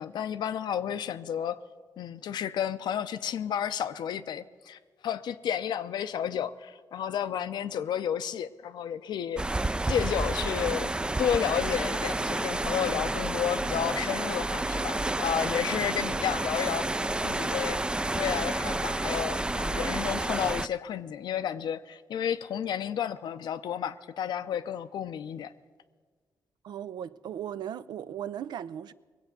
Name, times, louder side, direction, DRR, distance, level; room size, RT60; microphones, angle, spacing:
voice 1, 0.0-1.6 2.0-9.4 9.9-10.9 11.2-16.9 17.2-17.8 18.1-25.5, left 9 dB, 80° left, 0.6 m, -31 dB
sound 1, 9.4-20.7, right 2 dB, 10° right, 0.3 m, -30 dB
voice 2, 26.6-28.9, right 10 dB, 80° right, 0.4 m, -37 dB
20.5 x 8.1 x 6.7 m
cardioid pair, 60°, 7 cm